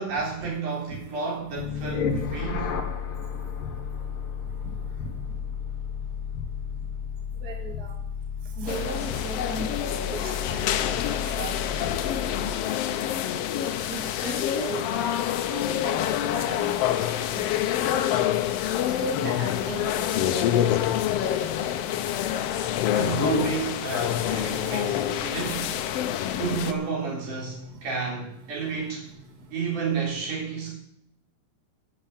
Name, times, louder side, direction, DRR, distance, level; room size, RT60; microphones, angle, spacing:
voice 1, 0.0-2.8 22.9-25.7 26.4-29.1 29.5-30.7, right 5 dB, 80° right, -3 dB, 5.3 m, -31 dB
sound 1, 1.6-12.7, left 6 dB, 55° left, 1.6 m, -33 dB
voice 2, 7.4-7.9 8.6-9.7 10.1-10.9 11.4-11.5 11.8-11.9 13.9-15.1 15.4-16.1 16.5-16.9 17.3-17.9 19.0-20.4, right 3 dB, 35° right, 2 dB, 2.1 m, -37 dB
sound 2, 8.7-26.7, left 11 dB, 80° left, 1.4 m, -27 dB
13.5 x 6.7 x 7.1 m, 0.72 s
omnidirectional pair, 3.6 m